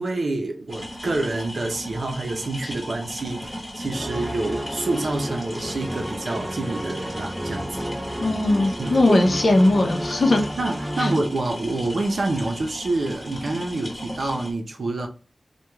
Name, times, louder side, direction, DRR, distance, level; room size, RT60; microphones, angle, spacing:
voice 1, 0.0-7.9 8.8-9.2 10.6-15.1, right 2 dB, 75° right, 0.6 m, -27 dB
sound 1, 0.7-14.5, equal, 15° left, 1.1 m, -36 dB
sound 2, 3.9-11.2, equal, 15° right, 0.5 m, -32 dB
voice 2, 8.2-10.4 11.0-11.1, left 2 dB, 65° left, 0.6 m, -19 dB
3.0 x 2.2 x 2.2 m
wide cardioid pair, 80°, 0 cm